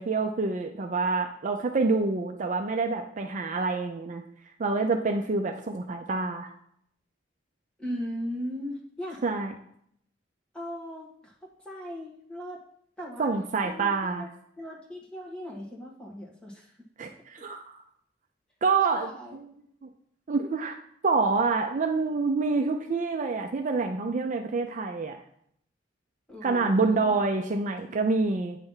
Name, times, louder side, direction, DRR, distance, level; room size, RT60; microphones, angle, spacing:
voice 1, 0.0-4.2 4.6-6.5 9.2-9.5 13.2-14.2 17.0-17.7 18.6-19.4 19.8-19.9 20.3-20.8 21.0-25.2 26.4-28.6, right 4 dB, 40° right, 4 dB, 0.5 m, -27 dB
voice 2, 7.8-9.2 10.5-12.6 13.0-13.3 13.6-14.3 14.6-16.8 18.7-19.4 26.3-27.2, equal, 5° left, -3 dB, 1.6 m, -38 dB
8.9 x 3.4 x 5.5 m, 0.69 s
head